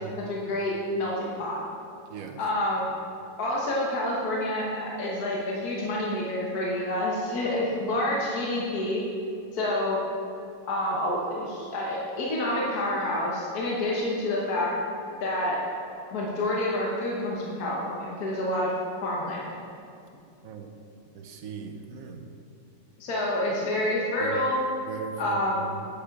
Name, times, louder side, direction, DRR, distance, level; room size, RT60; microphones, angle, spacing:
voice 1, 0.3-1.6 2.4-2.9 3.4-9.0 9.5-10.0 10.7-14.7 15.2-15.6 16.1-18.7 19.0-19.5 23.0-24.6 25.2-25.7, left 1 dB, 70° left, -4 dB, 1.7 m, -28 dB
voice 2, 2.1-2.4 20.4-20.7 21.1-22.3 24.2-24.4 24.8-25.8, right 6 dB, 65° right, 5 dB, 1.2 m, -39 dB
9.7 x 8.8 x 3.6 m, 2.5 s
omnidirectional pair, 1.7 m